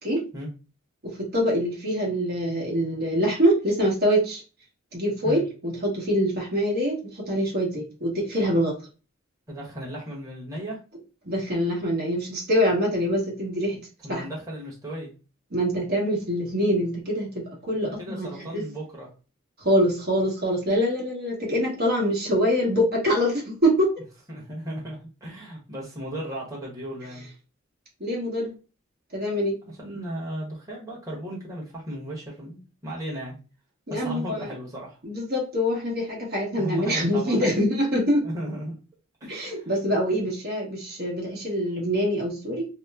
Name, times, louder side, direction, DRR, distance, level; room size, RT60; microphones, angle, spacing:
voice 1, 1.0-4.4 4.9-8.8 11.2-13.8 14.1-14.2 15.5-17.3 17.6-18.6 19.6-23.9 28.0-28.5 29.1-29.6 33.9-34.5 35.0-38.2 39.3-42.7, equal, 50° right, -2 dB, 1.2 m, -24 dB
voice 2, 9.5-10.8 14.0-15.1 17.8-19.1 24.3-27.3 29.7-33.4 33.9-35.0 36.5-37.5 38.2-38.8 39.2-39.7, right 1 dB, 15° right, -5 dB, 1.1 m, -35 dB
2.8 x 2.1 x 3.5 m, 0.33 s
head